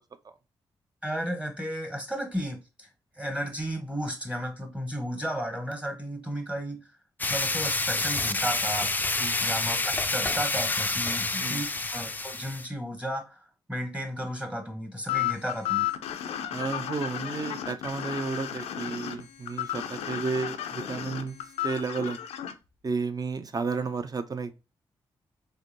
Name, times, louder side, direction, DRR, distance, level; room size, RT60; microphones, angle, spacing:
voice 1, 1.0-2.9 3.2-6.8 7.3-8.9 9.4-15.9, equal, 10° right, 0.9 m, -34 dB
sound 1, 7.2-12.7, left 2 dB, 15° left, 0.3 m, -28 dB
sound 2, 15.1-22.5, left 11 dB, 85° left, 0.4 m, -33 dB
voice 2, 16.5-21.4 21.6-22.2 22.8-24.5, right 4 dB, 40° right, 0.5 m, -32 dB
3.4 x 2.6 x 2.6 m
supercardioid pair, 45°, 10 cm